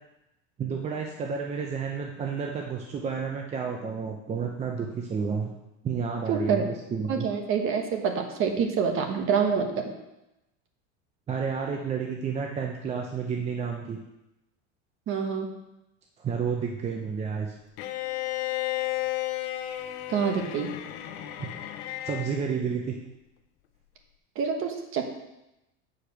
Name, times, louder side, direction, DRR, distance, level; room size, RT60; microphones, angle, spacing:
voice 1, 0.6-5.5 5.8-7.3 11.3-14.0 16.2-17.5 18.8-18.9 21.4-21.5 22.0-22.9, right 6 dB, 20° right, 1 dB, 0.6 m, -31 dB
voice 2, 6.3-9.9 15.1-15.5 20.1-20.7 24.3-25.0, right 6 dB, 40° right, 4 dB, 1.3 m, -27 dB
Bowed string instrument, 17.8-22.4, left 15 dB, 80° left, 0.8 m, -33 dB
8.3 x 5.1 x 5.9 m, 0.92 s
cardioid pair, 150°, 33 cm